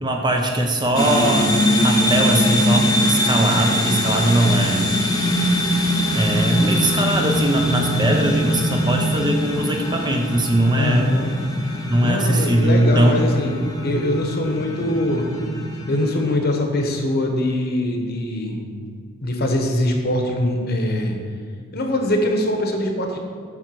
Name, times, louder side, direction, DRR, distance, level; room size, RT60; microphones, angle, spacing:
voice 1, 0.0-5.0 6.1-11.1 11.9-13.2, right 1 dB, 20° right, 2 dB, 0.6 m, -20 dB
sound 1, 1.0-16.4, equal, 15° left, 0.8 m, -22 dB
voice 2, 10.8-11.3 11.6-13.5 13.8-15.3 15.9-18.6 19.2-21.2 21.7-23.2, left 1 dB, 45° left, 3 dB, 1.0 m, -23 dB
9.0 x 3.9 x 6.2 m, 2.1 s
head